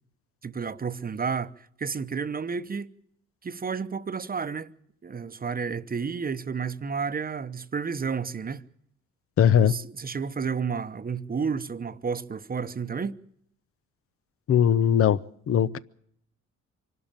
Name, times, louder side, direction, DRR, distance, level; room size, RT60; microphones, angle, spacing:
voice 1, 0.4-2.9 3.4-4.7 5.0-8.6 9.5-13.2, right 5 dB, 30° right, 1.0 m, -31 dB
voice 2, 9.4-9.7 14.5-15.2 15.5-15.8, left 9 dB, 50° left, 0.7 m, -19 dB
25.0 x 12.5 x 9.0 m
cardioid pair, 90°, 30 cm